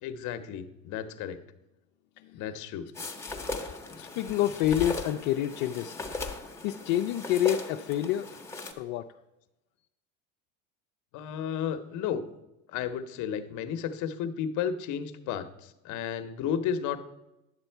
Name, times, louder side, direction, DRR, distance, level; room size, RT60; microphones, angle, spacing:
voice 1, 0.0-1.4 2.3-2.9 3.9-4.0 11.1-12.3 12.7-17.0, left 8 dB, 50° left, 9 dB, 0.9 m, -33 dB
voice 2, 2.2-2.7 3.9-6.4 6.6-8.3 8.8-9.2, left 12 dB, 70° left, 4 dB, 0.6 m, -29 dB
sound 1, 2.9-8.7, left 3 dB, 5° left, 0.9 m, -38 dB
10.0 x 6.8 x 4.5 m, 0.93 s
supercardioid pair, 120°, 38 cm